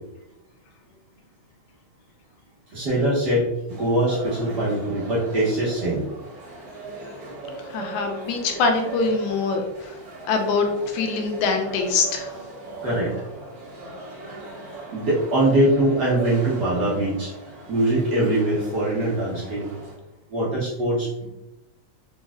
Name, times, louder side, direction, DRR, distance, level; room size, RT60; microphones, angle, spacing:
voice 1, 2.7-3.5 3.8-6.1 12.8-13.1 14.3-14.4 14.9-17.3 17.7-19.7 20.3-21.3, right 1 dB, 90° right, -7 dB, 0.9 m, -22 dB
sound 1, 3.7-20.0, right 3 dB, 40° right, 1.6 m, -39 dB
voice 2, 7.6-9.9 10.2-12.3, left 4 dB, 85° left, 3 dB, 2.1 m, -24 dB
4.6 x 4.2 x 2.4 m, 0.94 s
omnidirectional pair, 3.3 m